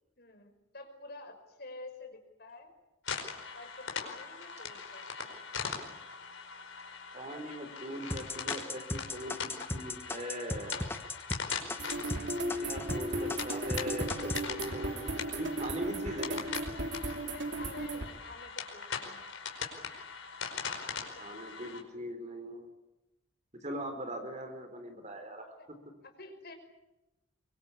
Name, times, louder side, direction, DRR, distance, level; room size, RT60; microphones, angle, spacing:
voice 1, 0.2-2.7 3.5-5.4 11.8-12.3 17.3-19.3 20.8-21.6 25.5-26.6, left 2 dB, 50° left, 5 dB, 5.6 m, -50 dB
sound 1, 3.0-21.8, left 6 dB, 70° left, 5.0 m, -41 dB
voice 2, 7.1-10.9 12.6-16.4 21.2-22.7 23.6-25.5, equal, 35° right, 7 dB, 4.2 m, -41 dB
sound 2, 8.1-13.0 13.3-14.4, left 2 dB, 10° left, 1.3 m, -36 dB
sound 3, 11.8-18.1, right 1 dB, 60° right, 3.0 m, -36 dB
25.0 x 24.5 x 8.5 m, 0.97 s
head